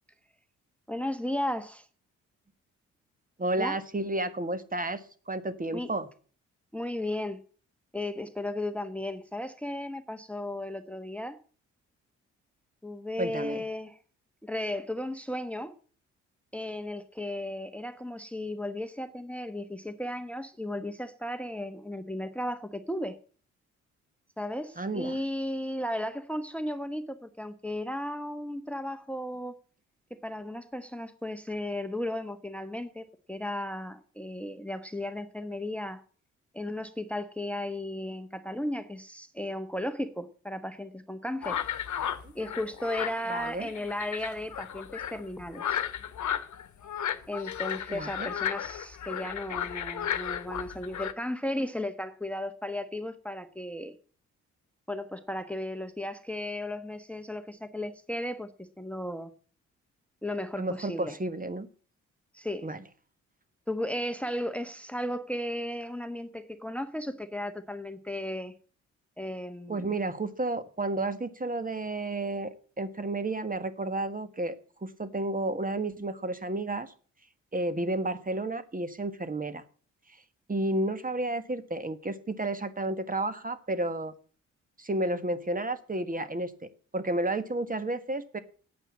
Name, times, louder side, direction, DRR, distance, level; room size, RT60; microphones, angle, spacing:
voice 1, 0.9-1.9 3.6-3.8 5.7-5.9 6.7-7.4 7.9-11.4 12.8-14.0 14.4-15.7 16.5-23.2 24.4-29.6 30.2-36.0 36.5-41.6 42.3-45.8 47.3-53.9 54.9-59.3 60.2-61.2 62.3-62.7 63.7-68.5 69.2-69.9, left 1 dB, 5° left, 1.3 m, -35 dB
voice 2, 3.4-6.1 13.2-13.6 24.8-25.2 42.2-42.3 43.3-43.7 47.9-48.3 60.6-61.7 62.6-62.8 69.7-74.5 74.8-76.9 77.5-79.6 80.5-84.1 84.8-88.4, right 2 dB, 25° right, 1.6 m, -31 dB
sound 1, 41.4-51.1, left 9 dB, 55° left, 1.3 m, -34 dB
9.0 x 8.8 x 8.4 m
hypercardioid pair, 40°, 36 cm